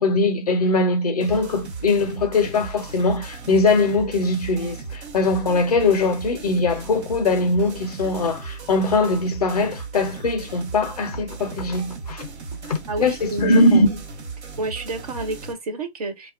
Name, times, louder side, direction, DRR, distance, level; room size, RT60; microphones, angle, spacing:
voice 1, 0.0-12.3 12.7-13.9, left 2 dB, 35° left, 0.4 m, -21 dB
sound 1, 1.2-15.5, right 4 dB, 75° right, 1.0 m, -37 dB
voice 2, 12.9-13.5 14.6-16.3, right 2 dB, 35° right, 0.4 m, -29 dB
2.7 x 2.1 x 2.4 m
hypercardioid pair, 145°, 33 cm